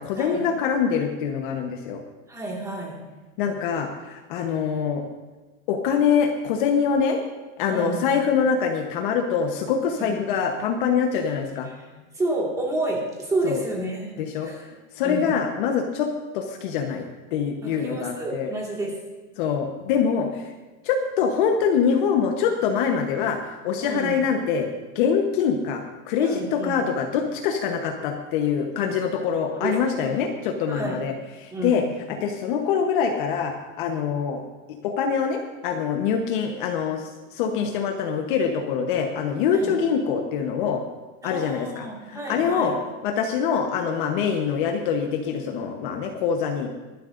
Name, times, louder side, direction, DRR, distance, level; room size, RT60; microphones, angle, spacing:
voice 1, 0.0-2.0 3.4-5.0 5.7-7.2 7.6-11.7 13.4-13.6 14.2-14.5 14.9-16.1 16.3-18.5 19.4-20.5 20.8-23.4 23.6-24.7 24.9-31.1 31.4-31.8 32.1-34.4 34.8-40.8 41.2-42.7 43.0-46.7, left 6 dB, 40° left, 4 dB, 1.0 m, -24 dB
voice 2, 2.3-3.2 7.7-8.1 10.0-10.2 11.7-14.1 14.4-14.7 15.0-15.4 17.6-19.0 23.8-24.1 26.2-26.9 29.5-30.3 30.7-31.0 31.5-31.8 39.5-39.7 41.2-42.7, right 2 dB, 10° right, -1 dB, 1.9 m, -30 dB
22.5 x 11.5 x 2.6 m, 1.3 s
supercardioid pair, 165°, 41 cm